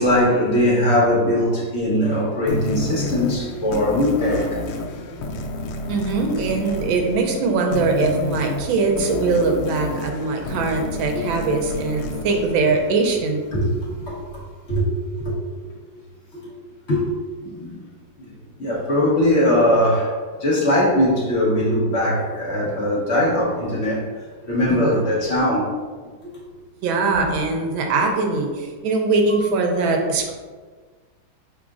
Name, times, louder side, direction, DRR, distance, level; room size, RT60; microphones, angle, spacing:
voice 1, 0.0-4.5 13.5-13.7 14.1-14.2 14.7-14.8 15.2-15.3 16.9-17.0 17.4-17.7 18.2-18.3 18.6-20.1 20.4-24.0 24.5-25.7, left 1 dB, 50° left, -5 dB, 0.9 m, -20 dB
sound 1, 2.5-13.6, left 2 dB, 85° left, 1.5 m, -30 dB
voice 2, 5.9-13.4 24.7-25.0 26.8-30.3, right 3 dB, 80° right, 2 dB, 1.4 m, -21 dB
4.8 x 3.7 x 2.4 m, 1.5 s
omnidirectional pair, 2.3 m